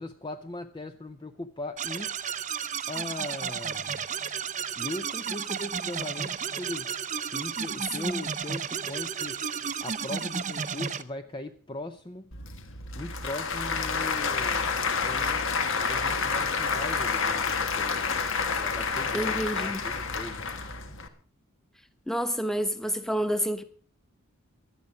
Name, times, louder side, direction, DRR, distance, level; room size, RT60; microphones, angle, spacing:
voice 1, 0.0-2.2 2.9-4.0 4.8-6.9 7.3-9.4 9.8-12.3 12.9-14.7 15.0-18.2 18.6-20.4, left 2 dB, 20° left, 0.6 m, -39 dB
sound 1, 1.8-11.0, right 7 dB, 35° right, 0.7 m, -33 dB
Applause / Crowd, 12.3-21.1, left 5 dB, 60° left, 1.6 m, -29 dB
voice 2, 19.1-19.8 22.1-23.6, equal, ahead, 1.2 m, -29 dB
17.0 x 12.0 x 5.0 m
head